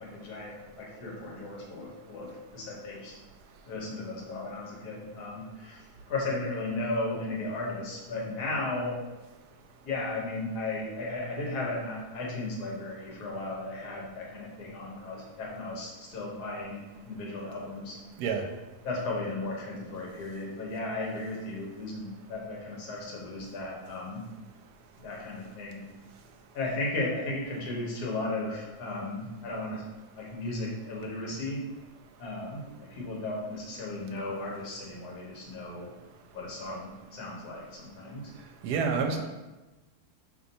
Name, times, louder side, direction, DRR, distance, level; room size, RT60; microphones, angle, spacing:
voice 1, 0.0-3.1 3.6-9.0 9.8-18.0 18.8-24.2 25.0-25.9 26.5-29.8 30.1-31.6 32.2-35.9 36.3-38.2 39.1-39.2, left 2 dB, 80° left, -2 dB, 1.5 m, -35 dB
voice 2, 38.6-39.2, right 5 dB, 80° right, 4 dB, 1.1 m, -27 dB
5.3 x 3.1 x 2.6 m, 1.1 s
omnidirectional pair, 1.7 m